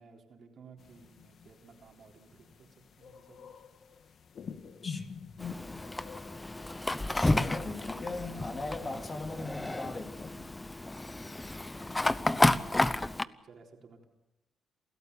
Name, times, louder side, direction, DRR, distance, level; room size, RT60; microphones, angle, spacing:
voice 1, 0.0-3.7 12.8-14.1, right 5 dB, 55° right, 1 dB, 3.9 m, -56 dB
sound 1, 0.8-9.4, left 6 dB, 60° left, 1.5 m, -48 dB
voice 2, 4.8-5.1 7.1-10.4, left 3 dB, 30° left, 4 dB, 2.8 m, -39 dB
Fire, 5.4-13.2, left 2 dB, 15° left, 0.7 m, -31 dB
28.5 x 13.5 x 6.9 m, 0.93 s
cardioid pair, 90°, 0 cm